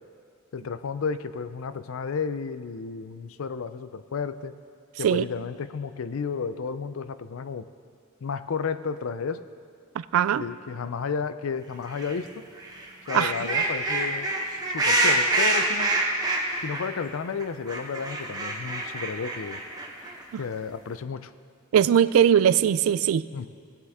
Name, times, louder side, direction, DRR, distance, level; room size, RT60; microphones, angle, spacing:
voice 1, 0.5-4.6 5.0-7.7 8.2-9.4 10.4-12.3 13.1-14.3 14.7-15.9 16.6-19.6 20.4-21.3 23.3-23.5, left 5 dB, 75° left, 13 dB, 0.5 m, -32 dB
voice 2, 10.1-10.4 13.1-13.3 20.3-20.4 21.7-23.3, right 9 dB, 85° right, 16 dB, 0.3 m, -20 dB
sound 1, 11.9-12.2 12.6-16.9 17.1-17.2 17.4-20.2, right 2 dB, 20° right, 1.2 m, -26 dB
18.0 x 8.0 x 3.6 m, 2.2 s
head